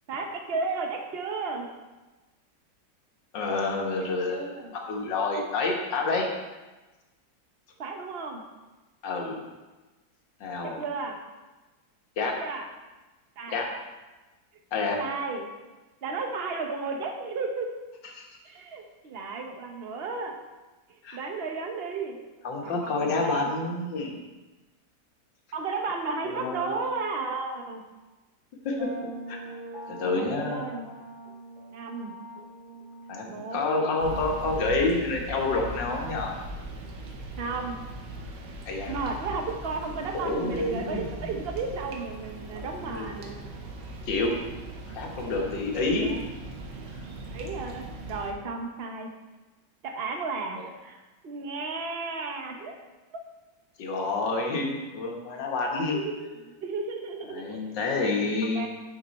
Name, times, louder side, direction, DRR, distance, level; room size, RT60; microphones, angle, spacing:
voice 1, 0.1-1.7 4.3-4.7 7.8-8.4 10.6-11.2 12.2-12.6 13.4-13.6 15.0-15.5 16.0-17.7 18.4-20.4 20.9-22.3 22.6-23.5 25.5-27.8 30.0-30.9 31.7-32.2 33.2-33.8 37.3-37.8 38.9-43.4 45.9-46.3 47.3-49.1 49.8-52.8 53.1-53.2 55.9-57.7 58.5-58.7, right 4 dB, 45° right, 3 dB, 0.9 m, -34 dB
voice 2, 3.3-4.5 4.9-6.3 9.0-9.4 10.4-10.8 12.2-12.4 13.5-13.7 14.7-15.0 18.1-18.2 21.0-21.2 22.4-24.2 26.3-26.7 28.7-28.9 29.3-29.4 29.9-30.8 33.1-36.3 38.7-38.9 40.1-41.3 42.5-43.1 44.1-44.4 44.9-46.1 50.6-50.7 53.8-56.1 57.3-58.7, left 3 dB, 80° left, 1 dB, 1.9 m, -28 dB
sound 1, 28.8-36.4, right 2 dB, 20° right, 2.2 m, -45 dB
sound 2, 34.0-48.3, right 2 dB, 80° right, 1.6 m, -40 dB
9.1 x 5.4 x 4.1 m, 1.2 s
omnidirectional pair, 1.9 m